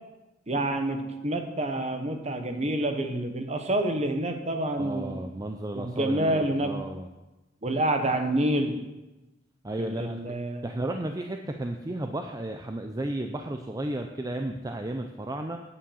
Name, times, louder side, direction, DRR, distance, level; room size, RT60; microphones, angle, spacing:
voice 1, 0.5-5.2 5.8-6.7 7.6-8.8 9.8-10.6, right 1 dB, 35° right, 6 dB, 1.1 m, -28 dB
voice 2, 4.8-7.1 9.6-10.2 10.6-15.6, right 1 dB, 20° right, 5 dB, 0.5 m, -33 dB
8.7 x 7.2 x 7.1 m, 1.1 s
head